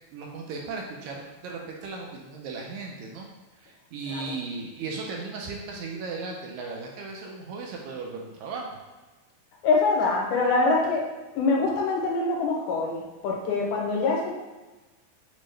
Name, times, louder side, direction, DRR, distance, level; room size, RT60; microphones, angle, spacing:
voice 1, 0.1-3.3 3.6-8.8, right 4 dB, 80° right, -1 dB, 1.8 m, -36 dB
voice 2, 9.6-11.1 11.4-14.3, left 3 dB, 90° left, 0 dB, 2.1 m, -24 dB
6.1 x 2.1 x 3.2 m, 1.2 s
omnidirectional pair, 3.6 m